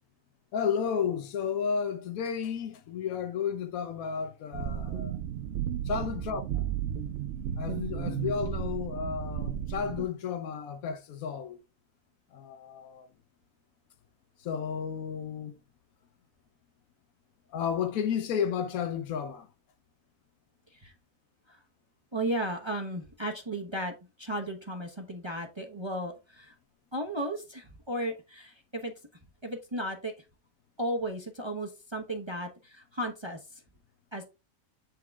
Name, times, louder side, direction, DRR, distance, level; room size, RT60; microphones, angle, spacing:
voice 1, 0.5-5.1 5.9-6.6 7.6-11.6 12.3-13.1 14.4-15.6 17.5-19.5, left 7 dB, 85° left, 1.2 m, -32 dB
sound 1, 4.5-10.1, right 9 dB, 65° right, 0.9 m, -34 dB
voice 2, 22.1-23.9 24.2-26.5 26.9-28.9 29.4-30.1 30.8-33.6 34.1-34.2, right 1 dB, 25° right, 0.8 m, -35 dB
8.5 x 3.7 x 3.5 m
omnidirectional pair, 1.4 m